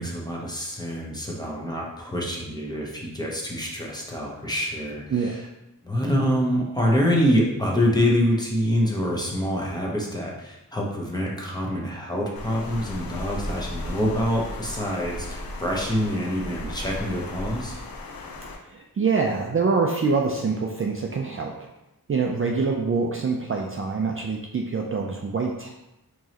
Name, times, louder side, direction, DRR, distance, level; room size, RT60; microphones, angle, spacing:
voice 1, 0.0-5.4 5.8-17.8, equal, 10° left, -3 dB, 0.9 m, -26 dB
Water, 12.4-18.6, left 1 dB, 70° left, 0.6 m, -35 dB
voice 2, 18.7-21.5 22.1-25.7, right 4 dB, 40° right, 0 dB, 0.4 m, -25 dB
4.6 x 3.0 x 2.8 m, 0.93 s
wide cardioid pair, 75°, 36 cm